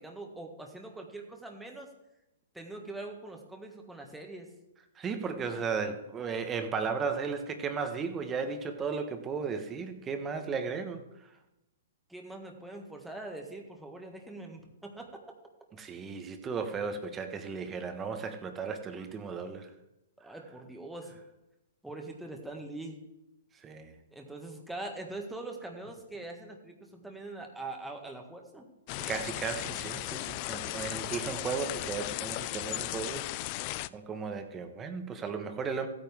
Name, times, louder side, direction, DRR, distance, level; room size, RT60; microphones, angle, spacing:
voice 1, 0.0-1.9 2.5-4.5 12.1-15.2 20.2-21.2 21.8-23.0 24.1-28.7, right 2 dB, 5° right, 1 dB, 1.6 m, -43 dB
voice 2, 5.0-11.0 15.8-19.7 23.6-23.9 29.0-35.9, right 5 dB, 20° right, 6 dB, 1.3 m, -35 dB
sound 1, 28.9-33.9, left 18 dB, 40° left, 0.3 m, -36 dB
15.0 x 9.1 x 3.6 m, 0.92 s
hypercardioid pair, 130°, 0 cm